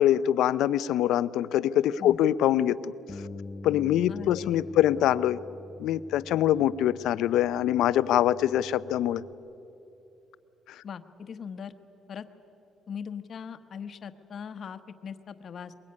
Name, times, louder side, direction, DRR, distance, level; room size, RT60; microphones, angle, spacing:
voice 1, 0.0-2.9 3.6-5.4 5.8-9.2 10.7-10.8, left 12 dB, 85° left, 16 dB, 0.6 m, -24 dB
Bass guitar, 3.1-9.3, left 3 dB, 20° left, 0.6 m, -45 dB
voice 2, 4.1-5.0 10.8-11.7 12.1-12.3 12.9-15.7, left 7 dB, 40° left, 9 dB, 1.1 m, -40 dB
22.5 x 22.0 x 9.7 m, 2.9 s
cardioid pair, 175°, 0 cm